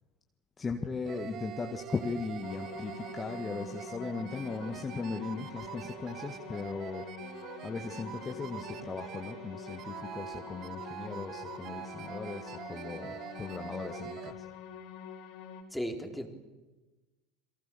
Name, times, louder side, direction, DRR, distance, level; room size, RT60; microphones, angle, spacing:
voice 1, 0.6-7.1 7.6-14.5, left 4 dB, 20° left, 4 dB, 1.8 m, -38 dB
sound 1, 1.0-14.3, right 10 dB, 45° right, 1.4 m, -44 dB
sound 2, 2.4-15.6, left 7 dB, 55° left, 3.4 m, -46 dB
voice 2, 15.7-16.3, equal, ahead, 3 dB, 4.0 m, -35 dB
28.5 x 23.0 x 7.1 m, 1.2 s
figure-of-eight pair, 75°, 0 cm